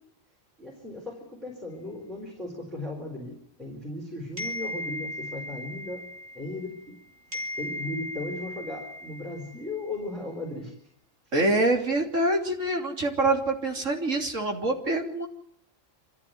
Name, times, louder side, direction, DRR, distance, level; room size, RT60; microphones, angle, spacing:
voice 1, 0.6-6.1 6.3-6.8 7.6-10.7, left 2 dB, ahead, 0 dB, 4.2 m, -36 dB
sound 1, 4.4-7.0 7.3-9.9, left 1 dB, 60° right, 3.8 m, -37 dB
voice 2, 11.3-15.3, right 2 dB, 90° right, 2 dB, 3.7 m, -25 dB
26.0 x 14.5 x 9.4 m, 0.70 s
omnidirectional pair, 1.3 m